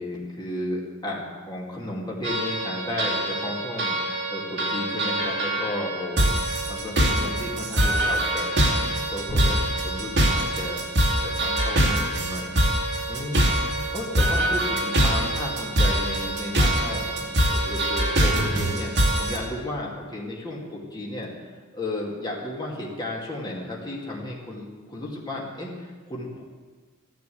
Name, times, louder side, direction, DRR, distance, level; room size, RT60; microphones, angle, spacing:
voice 1, 0.0-10.9 11.2-12.6 13.1-21.3 21.7-26.4, left 1 dB, 20° left, -3 dB, 2.5 m, -34 dB
sound 1, 2.2-19.4, right 1 dB, 55° right, 2.5 m, -24 dB
sound 2, 9.3-11.9, equal, 40° right, 5.8 m, -37 dB
14.0 x 10.5 x 7.9 m, 1.4 s
head